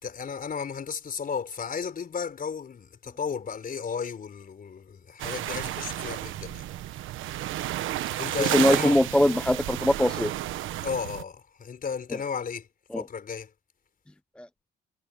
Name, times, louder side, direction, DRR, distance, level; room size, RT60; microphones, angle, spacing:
voice 1, 0.0-6.7 8.2-9.0 10.8-12.7 12.9-13.5, left 6 dB, 45° left, 4.7 m, -34 dB
sound 1, 5.2-11.2, right 13 dB, 85° right, 1.2 m, -32 dB
voice 2, 8.4-10.3 12.9-13.0 14.4-14.5, left 1 dB, 5° left, 0.6 m, -22 dB
cardioid pair, 90°, 20 cm